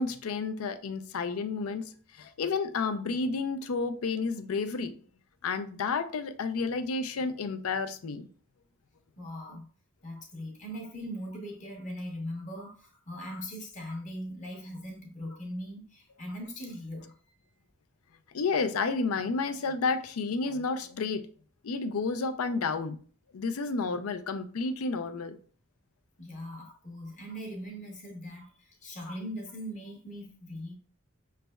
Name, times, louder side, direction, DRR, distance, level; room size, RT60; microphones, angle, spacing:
voice 1, 0.0-4.9 5.4-8.3 18.3-21.3 21.6-23.0 23.3-25.4, left 4 dB, 90° left, 0.5 m, -31 dB
voice 2, 9.2-9.7 10.0-17.1 26.2-30.7, equal, 35° left, 0.8 m, -40 dB
5.1 x 3.2 x 2.2 m
head